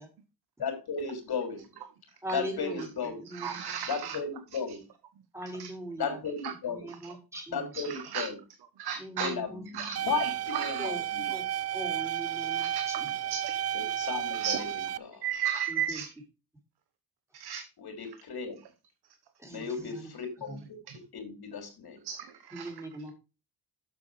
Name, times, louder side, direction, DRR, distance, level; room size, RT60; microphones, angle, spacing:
voice 1, 0.6-1.7 2.3-3.2 3.9-4.8 6.0-6.8 7.5-8.4 9.2-11.4 13.7-14.7 15.0-15.2 17.8-18.6 19.5-20.6 21.1-22.0, left 5 dB, 75° left, 5 dB, 3.2 m, -35 dB
voice 2, 2.2-2.9 3.3-3.6 5.3-6.2 6.7-7.7 9.0-9.9 10.8-11.4 11.7-13.1 15.7-16.0 19.4-20.1 20.5-20.6 22.5-23.1, right 1 dB, 5° right, 2 dB, 3.5 m, -40 dB
voice 3, 3.3-4.2 5.6-5.7 6.4-6.5 7.8-8.3 8.8-9.3 9.7-10.9 12.6-12.9 13.3-13.6 14.3-14.6 15.2-16.1 17.3-17.6 22.0-22.7, right 8 dB, 85° right, 8 dB, 1.0 m, -34 dB
sound 1, 10.0-15.0, right 11 dB, 40° right, 0.4 m, -32 dB
7.3 x 7.1 x 4.8 m, 0.30 s
cardioid pair, 85°, 38 cm